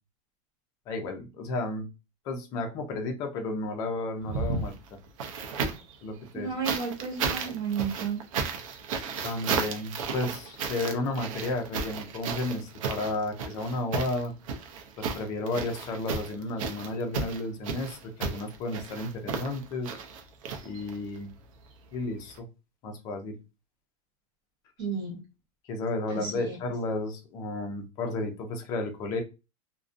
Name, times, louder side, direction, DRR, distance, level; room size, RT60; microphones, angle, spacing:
voice 1, 0.9-1.9 2.3-4.8 6.0-6.5 9.2-14.3 15.0-19.9 20.6-21.3 21.9-22.5 22.8-23.4 25.7-29.2, left 2 dB, 20° left, 4 dB, 0.3 m, -32 dB
sound 1, 4.2-5.9 6.6-21.2 22.3-22.4, right 5 dB, 70° right, 0.5 m, -34 dB
voice 2, 6.3-8.2 24.8-25.2 26.1-26.6, right 6 dB, 50° right, -3 dB, 1.1 m, -32 dB
2.5 x 2.1 x 2.4 m, 0.27 s
supercardioid pair, 180°, 18 cm